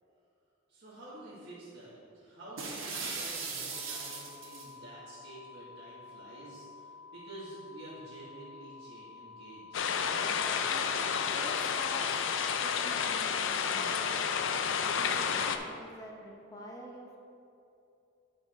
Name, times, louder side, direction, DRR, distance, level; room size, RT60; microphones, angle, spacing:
voice 1, 0.7-10.0, right 1 dB, 55° right, -10 dB, 1.6 m, -49 dB
sound 1, 2.6-4.7, right 4 dB, 80° right, 1.2 m, -38 dB
sound 2, 3.7-11.8, left 4 dB, 30° right, 1.2 m, -51 dB
sound 3, 9.7-15.6, left 6 dB, 70° left, 0.4 m, -30 dB
voice 2, 10.7-12.3 12.6-14.1 14.9-17.2, equal, 15° left, -2 dB, 0.9 m, -47 dB
8.5 x 4.7 x 4.4 m, 2.7 s
head